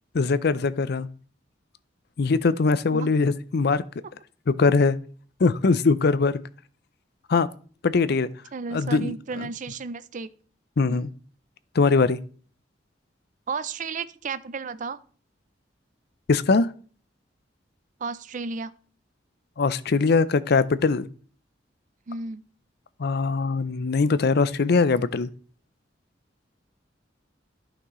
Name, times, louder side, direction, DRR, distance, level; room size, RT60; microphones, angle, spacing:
voice 1, 0.1-1.1 2.2-3.8 4.5-5.0 5.4-6.4 7.3-7.5 7.8-8.3 8.7-9.1 10.8-11.1 11.7-12.2 16.3-16.7 19.6-21.1 23.0-25.3, left 4 dB, 60° left, 0.5 m, -21 dB
voice 2, 8.5-10.3 10.9-11.0 13.5-15.0 18.0-18.8 22.1-22.5, right 4 dB, 45° right, 0.5 m, -33 dB
11.5 x 6.0 x 3.1 m
head